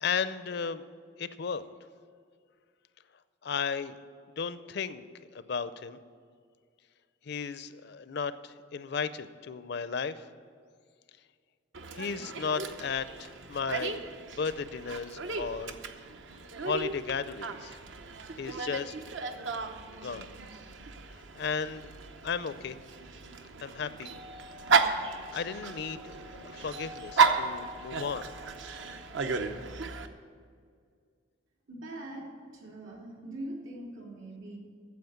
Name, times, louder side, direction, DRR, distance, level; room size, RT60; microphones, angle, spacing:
voice 1, 0.0-0.8 1.2-1.6 3.4-4.0 4.4-5.1 5.3-6.0 7.3-10.3 11.9-14.0 14.3-15.8 16.6-17.8 18.4-19.0 19.9-20.3 21.3-21.9 22.2-22.8 23.6-24.1 25.1-28.3, left 6 dB, 55° left, 13 dB, 0.5 m, -34 dB
Dog, 11.7-30.1, right 5 dB, 65° right, 0.7 m, -34 dB
voice 2, 31.7-32.3 32.5-34.6, right 1 dB, 90° right, -2 dB, 2.8 m, -42 dB
9.3 x 7.5 x 9.2 m, 2.1 s
head